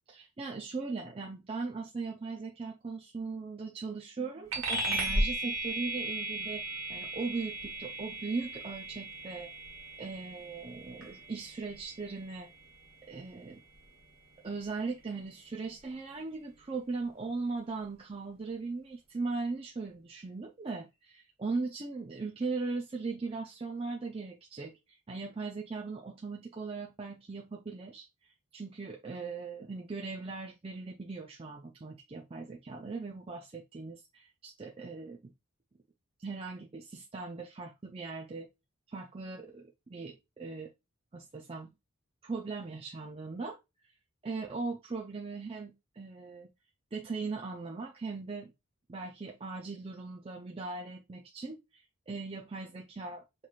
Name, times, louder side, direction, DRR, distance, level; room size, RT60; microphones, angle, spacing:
voice 1, 0.1-6.6 6.9-9.5 10.0-12.5 13.0-13.6 14.4-35.2 36.2-38.5 38.9-40.7 41.1-41.7 42.2-43.6 44.2-46.5 46.9-48.5 48.9-53.2, right 4 dB, 25° right, 0.4 m, -39 dB
sound 1, 4.5-14.4, right 1 dB, 65° right, 1.5 m, -36 dB
5.8 x 3.1 x 2.4 m
head